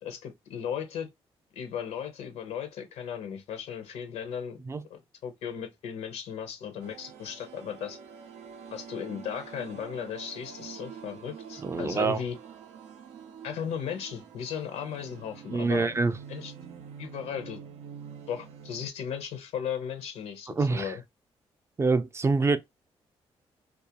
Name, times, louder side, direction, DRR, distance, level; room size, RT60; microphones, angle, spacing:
voice 1, 0.0-1.1 1.6-4.6 4.9-8.0 8.7-12.4 13.4-15.9 16.3-16.5 17.0-17.6 18.3-21.0, left 8 dB, 85° left, 0.6 m, -36 dB
sound 1, 6.8-18.9, right 7 dB, 85° right, 0.5 m, -46 dB
voice 2, 11.6-12.2 15.5-16.1 20.6-20.9 21.8-22.6, right 4 dB, 25° right, 0.4 m, -25 dB
2.3 x 2.1 x 2.8 m
cardioid pair, 70°, 11 cm